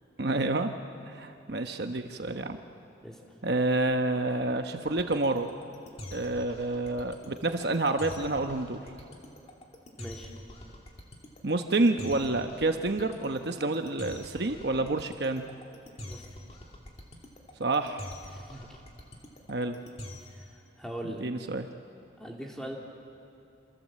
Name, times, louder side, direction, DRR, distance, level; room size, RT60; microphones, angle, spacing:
voice 1, 0.2-0.7 1.0-2.6 3.4-5.5 6.1-8.8 11.4-15.4 17.6-18.1 19.5-19.7 21.2-21.7, right 2 dB, 60° right, 6 dB, 1.0 m, -28 dB
sound 1, 4.9-20.5, left 1 dB, 35° left, 2.6 m, -45 dB
voice 2, 10.0-10.3 16.1-16.2 18.3-18.8 20.8-21.3 22.2-22.8, right 1 dB, 5° left, -1 dB, 2.7 m, -40 dB
27.0 x 27.0 x 7.6 m, 2.7 s
head